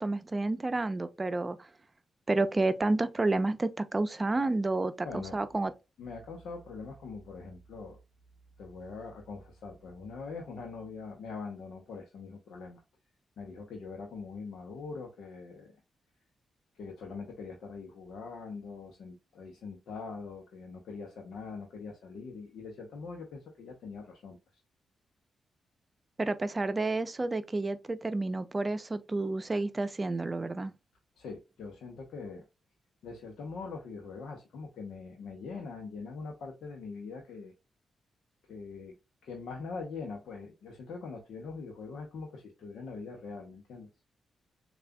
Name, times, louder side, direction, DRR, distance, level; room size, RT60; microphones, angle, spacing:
voice 1, 0.0-1.6 2.3-5.7 26.2-30.7, right 2 dB, 35° right, 0.6 m, -30 dB
voice 2, 5.0-5.4 6.0-8.0 8.6-12.8 13.4-15.7 16.7-24.4 31.2-32.4 33.0-37.5 38.5-38.9 39.2-43.9, left 4 dB, 75° left, 0.9 m, -43 dB
6.7 x 2.5 x 2.3 m
hypercardioid pair, 40°, 0 cm